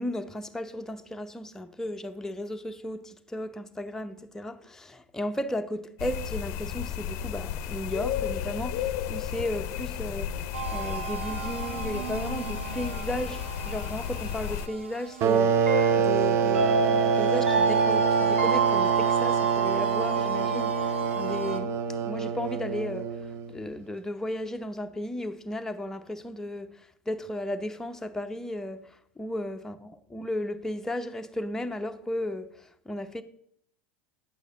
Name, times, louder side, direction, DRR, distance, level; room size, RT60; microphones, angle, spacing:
voice 1, 0.0-10.4 10.7-21.8 22.0-33.2, left 1 dB, 5° left, 0.7 m, -35 dB
sound 1, 6.0-14.7, left 9 dB, 50° left, 0.6 m, -33 dB
sound 2, 10.5-21.6, right 3 dB, 80° right, 0.7 m, -29 dB
sound 3, 15.2-23.6, right 7 dB, 45° right, 0.6 m, -26 dB
9.8 x 8.3 x 3.8 m
figure-of-eight pair, 80°, 7 cm